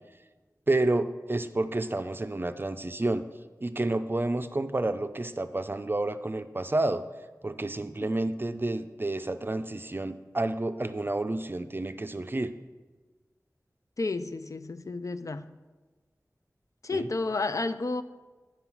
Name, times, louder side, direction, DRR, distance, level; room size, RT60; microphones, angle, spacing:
voice 1, 0.7-3.2 3.6-7.0 7.4-12.5 16.9-17.1, right 2 dB, 35° right, 0.4 m, -30 dB
voice 2, 14.0-15.6 16.8-18.0, left 3 dB, 60° left, 0.4 m, -31 dB
9.1 x 3.9 x 5.9 m
wide cardioid pair, 55°, 6 cm